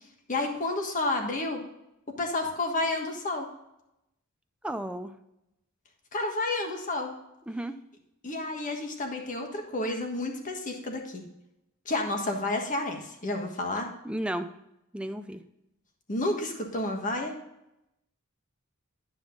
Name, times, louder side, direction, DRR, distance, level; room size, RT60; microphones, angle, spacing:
voice 1, 0.3-1.6 2.2-3.5 6.1-7.1 8.2-11.2 11.8-13.9 16.1-17.3, left 2 dB, 35° left, 3 dB, 1.5 m, -30 dB
voice 2, 4.6-5.1 7.5-7.8 14.0-14.5 14.9-15.4, right 1 dB, 5° right, 8 dB, 0.5 m, -33 dB
11.5 x 5.3 x 3.8 m, 0.86 s
head